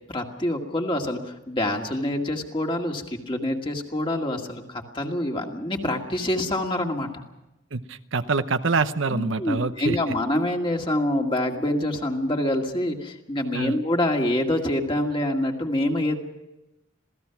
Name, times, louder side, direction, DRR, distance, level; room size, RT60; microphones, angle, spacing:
voice 1, 0.1-7.2 9.1-16.2, left 1 dB, 25° left, 2 dB, 2.1 m, -26 dB
voice 2, 7.7-10.0 13.5-13.8, right 4 dB, 75° right, 10 dB, 0.9 m, -25 dB
27.0 x 17.0 x 5.9 m, 0.96 s
head